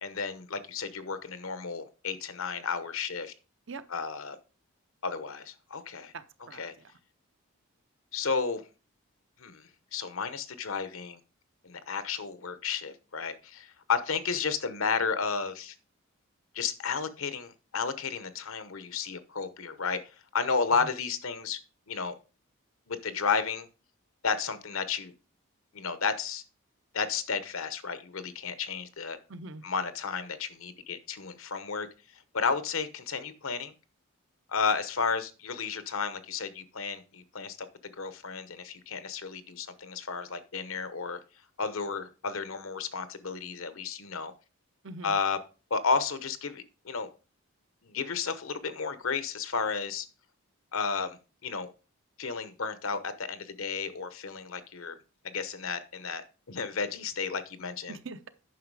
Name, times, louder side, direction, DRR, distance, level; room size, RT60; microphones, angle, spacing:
voice 1, 0.0-3.3 3.9-4.4 5.0-6.1 6.6-6.7 8.1-8.6 9.4-9.6 9.9-11.2 11.6-15.7 16.5-20.0 20.3-21.6 21.9-22.1 22.9-23.7 24.2-25.1 25.7-26.4 26.9-29.2 29.6-31.9 32.3-33.7 34.5-37.7 38.0-41.2 41.6-44.3 45.0-45.4 45.7-47.1 47.8-50.1 50.7-51.7 52.2-55.0 55.2-58.0, left 5 dB, 70° left, 0.9 m, -32 dB
voice 2, 6.1-6.9 20.8-20.9 29.3-29.6 44.8-45.2 57.9-58.3, right 3 dB, 55° right, 0.7 m, -43 dB
9.3 x 5.9 x 4.8 m
head